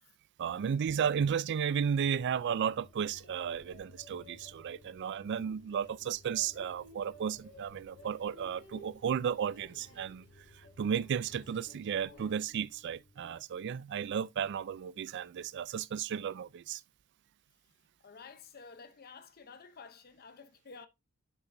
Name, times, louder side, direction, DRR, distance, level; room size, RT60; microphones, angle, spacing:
voice 1, 0.4-10.2 10.5-16.8, right 7 dB, 55° right, 0.3 m, -34 dB
sound 1, 1.8-13.4, left 1 dB, 75° left, 3.4 m, -57 dB
voice 2, 18.0-20.9, left 5 dB, 45° left, 0.7 m, -51 dB
7.4 x 6.7 x 2.6 m
head